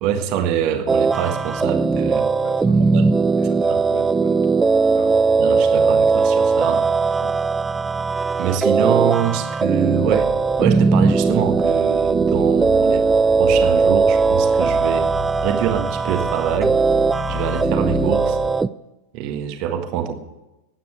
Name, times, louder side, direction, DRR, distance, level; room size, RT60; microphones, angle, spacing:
voice 1, 0.0-2.3 2.8-3.2 3.7-3.8 5.4-6.9 8.4-10.3 10.6-13.1 13.4-15.1 15.4-16.8 17.3-18.4 19.1-20.1, right 9 dB, 40° right, 8 dB, 1.6 m, -24 dB
sound 1, 0.9-18.7, right 4 dB, 15° right, 0.4 m, -19 dB
voice 2, 2.3-3.0 3.4-4.6 4.9-5.2 7.2-7.4, left 6 dB, 60° left, 6 dB, 1.9 m, -40 dB
sound 2, 9.9-18.5, left 10 dB, 10° left, 0.9 m, -34 dB
15.5 x 9.4 x 7.9 m, 0.99 s
figure-of-eight pair, 90°, 0 cm